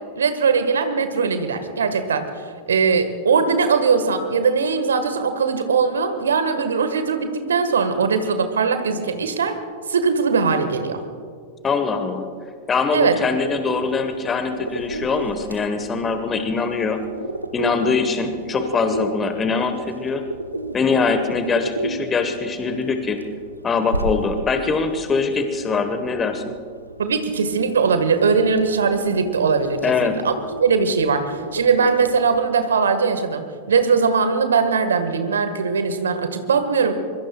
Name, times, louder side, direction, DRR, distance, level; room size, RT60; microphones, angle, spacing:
voice 1, 0.2-2.3 2.7-9.6 9.9-11.0 12.9-13.2 27.0-30.3 30.6-36.9, right 5 dB, 70° right, 9 dB, 1.6 m, -20 dB
voice 2, 11.6-12.2 12.7-17.0 17.5-20.2 20.7-23.2 23.6-26.5 29.8-30.2, left 4 dB, 20° left, 8 dB, 1.3 m, -22 dB
sound 1, 13.4-32.4, right 1 dB, 85° right, 1.0 m, -34 dB
24.5 x 23.0 x 2.4 m, 2.1 s
figure-of-eight pair, 90°, 0 cm